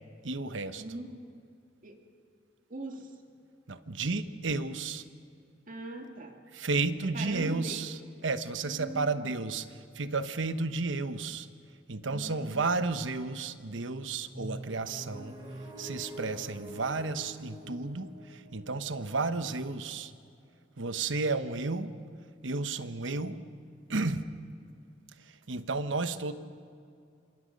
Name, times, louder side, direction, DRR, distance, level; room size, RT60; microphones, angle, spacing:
voice 1, 0.2-0.8 3.7-5.0 6.5-9.7 9.9-11.5 11.9-15.4 15.8-20.1 20.8-21.9 22.4-23.4 23.9-24.2 25.3-26.3, right 3 dB, 70° right, 11 dB, 1.1 m, -32 dB
voice 2, 0.8-1.2 1.8-2.0 2.7-3.1 5.7-6.4 7.1-7.9 8.6-9.3 12.1-12.7, right 1 dB, 45° right, 3 dB, 2.3 m, -41 dB
sound 1, 14.2-20.0, right 1 dB, 20° right, 5.8 m, -45 dB
27.0 x 26.5 x 5.3 m, 2.4 s
head